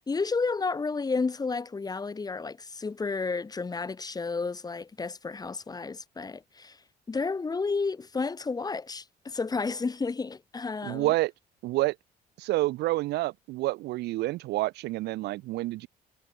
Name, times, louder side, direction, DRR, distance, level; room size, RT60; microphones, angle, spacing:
voice 1, 0.1-6.8 7.1-11.1, left 4 dB, 20° left, 2.7 m, -31 dB
voice 2, 10.8-11.3 11.6-12.0 12.4-15.9, right 18 dB, 75° right, 0.7 m, -28 dB
cardioid pair, 110°, 17 cm